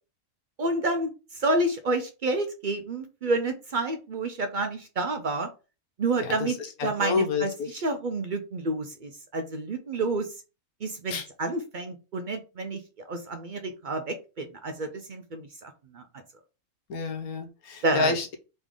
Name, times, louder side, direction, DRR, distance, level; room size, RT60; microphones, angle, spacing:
voice 1, 0.6-1.1 1.4-5.5 6.0-6.6 6.8-10.3 10.8-12.8 13.1-16.0 17.8-18.2, right 2 dB, 60° right, 6 dB, 0.5 m, -29 dB
voice 2, 6.2-7.7 11.1-11.3 16.9-18.3, left 4 dB, 80° left, 6 dB, 1.2 m, -29 dB
4.0 x 3.7 x 3.6 m, 0.31 s
omnidirectional pair, 1.5 m